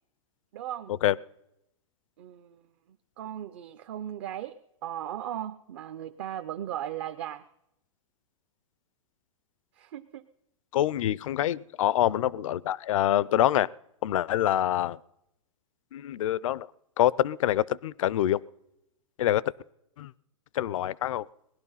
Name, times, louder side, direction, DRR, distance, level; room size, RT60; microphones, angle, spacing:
voice 1, 0.5-0.9 2.2-2.6 3.2-7.5 9.8-10.2, right 11 dB, 55° right, 8 dB, 0.6 m, -37 dB
voice 2, 10.7-13.7 14.0-15.0 15.9-16.7 17.0-18.4 19.2-19.4 20.0-20.1 20.5-21.3, left 12 dB, 75° left, 22 dB, 0.5 m, -25 dB
19.5 x 11.5 x 5.6 m, 0.85 s
hypercardioid pair, 145°, 17 cm